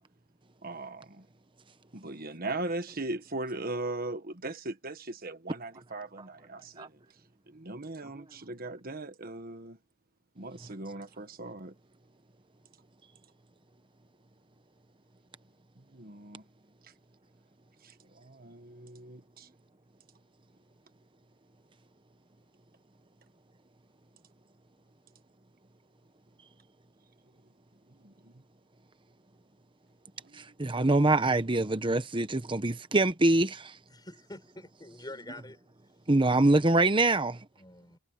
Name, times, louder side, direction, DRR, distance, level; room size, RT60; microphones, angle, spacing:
voice 1, 0.6-1.2 1.9-7.0 7.5-9.8 10.4-11.7 15.9-16.4 17.8-19.5 28.0-28.3 30.2-30.4, right 2 dB, 45° right, 1.5 m, -39 dB
voice 2, 30.3-33.8 36.1-37.4, right 2 dB, 25° right, 1.0 m, -25 dB
voice 3, 33.9-35.6 37.6-38.0, left 1 dB, 20° left, 5.7 m, -46 dB
head